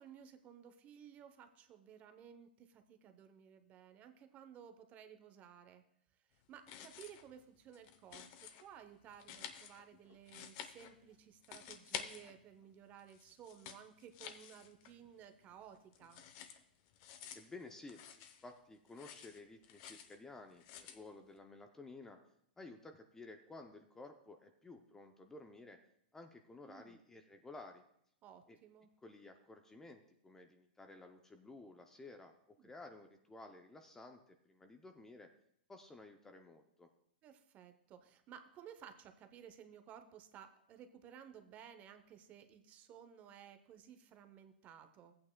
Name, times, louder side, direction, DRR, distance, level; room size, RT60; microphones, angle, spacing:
voice 1, 0.0-5.8 6.3-16.2 26.7-27.0 28.2-28.9 32.6-32.7 37.2-45.1, right 9 dB, 25° right, 9 dB, 0.7 m, -57 dB
sound 1, 6.5-7.3 7.6-8.6 9.1-11.2 11.4-12.7 13.0-15.1 15.4-18.6 18.9-20.2 20.6-21.0, left 9 dB, 40° left, 0.7 m, -51 dB
voice 2, 17.3-22.2 22.6-25.8 26.1-27.8 28.5-28.6 29.0-35.3 35.7-36.9, left 2 dB, 10° left, 6 dB, 0.5 m, -54 dB
14.5 x 8.6 x 2.2 m, 0.73 s
hypercardioid pair, 140°, 5 cm